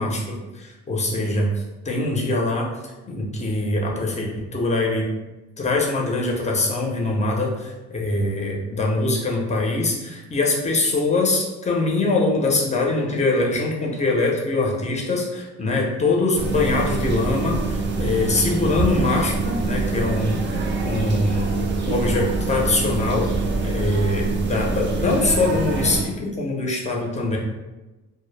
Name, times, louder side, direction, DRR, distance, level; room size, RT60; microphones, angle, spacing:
voice 1, 0.0-1.5 1.8-2.7 3.1-5.1 5.6-20.4 20.8-21.5 21.8-23.3 23.6-27.4, left 2 dB, 25° left, -1 dB, 0.6 m, -23 dB
sound 1, 16.3-26.0, right 3 dB, 40° right, 0.4 m, -25 dB
2.0 x 2.0 x 3.1 m, 1.1 s
cardioid pair, 90°, 30 cm